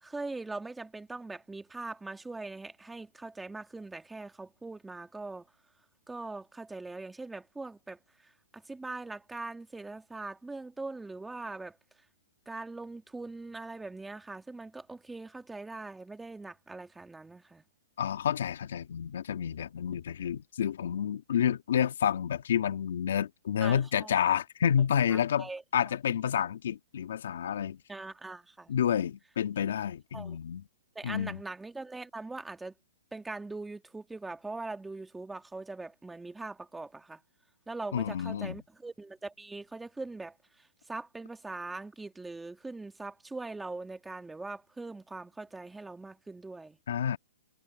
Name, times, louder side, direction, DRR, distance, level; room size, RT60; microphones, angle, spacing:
voice 1, 0.0-5.5 6.1-11.8 12.5-17.6 23.6-24.1 25.1-25.6 27.9-28.7 30.1-30.4 31.0-32.7 33.1-37.2 37.7-46.8, right 3 dB, 5° right, 2.0 m, -41 dB
voice 2, 18.0-27.8 28.7-30.6 31.0-31.4 37.9-38.6 46.9-47.2, left 9 dB, 70° left, 1.7 m, -29 dB
hypercardioid pair, 145°, 0 cm